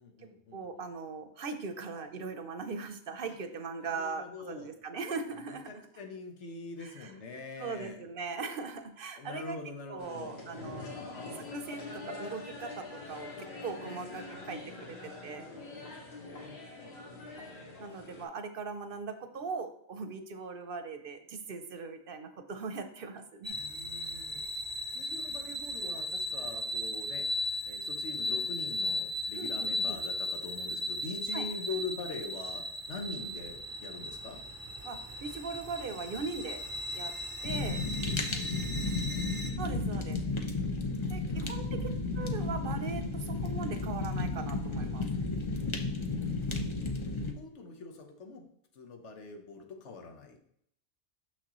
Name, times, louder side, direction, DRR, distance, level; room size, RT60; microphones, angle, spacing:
voice 1, 0.0-0.9 3.3-3.4 3.8-4.7 5.5-8.0 9.2-10.4 14.2-14.6 16.4-17.3 23.5-24.4 24.9-27.3 27.7-34.4 37.4-37.5 37.9-39.4 40.8-41.7 46.2-48.4 48.7-50.5, left 3 dB, 85° left, 4 dB, 1.3 m, -44 dB
voice 2, 0.5-5.8 6.8-7.1 7.6-9.6 9.9-10.9 11.4-15.5 17.8-23.5 29.3-30.0 31.3-31.5 34.8-36.6 36.9-37.1 37.4-37.8 39.6-40.2 41.1-45.1, right 4 dB, 60° right, 9 dB, 0.8 m, -40 dB
sound 1, 10.0-18.3, left 3 dB, 65° left, 1.7 m, -44 dB
sound 2, 23.4-39.5, left 1 dB, 25° right, 0.5 m, -37 dB
Fire, 37.4-47.3, left 3 dB, 30° left, 0.6 m, -33 dB
6.3 x 6.2 x 3.0 m, 0.70 s
omnidirectional pair, 1.2 m